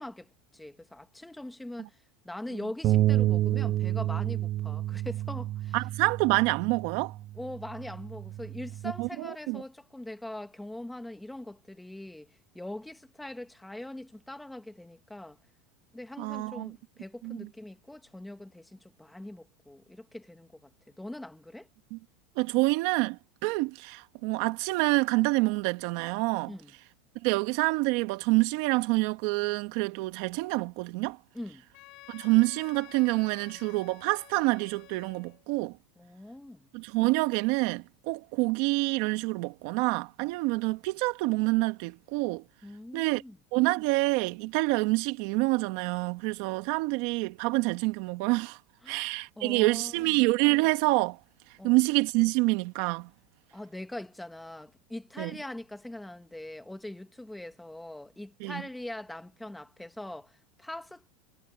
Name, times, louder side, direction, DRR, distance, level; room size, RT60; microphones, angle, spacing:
voice 1, 0.0-2.0 2.2-5.8 7.3-15.4 15.9-21.7 26.5-26.7 31.3-31.6 36.0-36.7 42.6-43.4 48.8-49.1 49.4-50.2 51.6-51.8 53.5-61.1, left 1 dB, 5° left, 1.6 m, -42 dB
sound 1, 2.8-9.1, right 14 dB, 45° right, 0.7 m, -29 dB
voice 2, 5.7-7.1 9.0-9.6 16.2-16.7 17.2-17.5 21.9-22.0 22.3-26.5 27.2-31.2 32.1-35.8 36.7-42.4 42.9-43.2 43.5-48.6 48.9-51.2 51.6-53.1 55.2-55.3 58.4-58.6, right 24 dB, 65° right, 1.7 m, -27 dB
Wind instrument woodwind instrument, 31.7-35.5, left 22 dB, 55° left, 7.3 m, -52 dB
supercardioid pair, 125°, 0 cm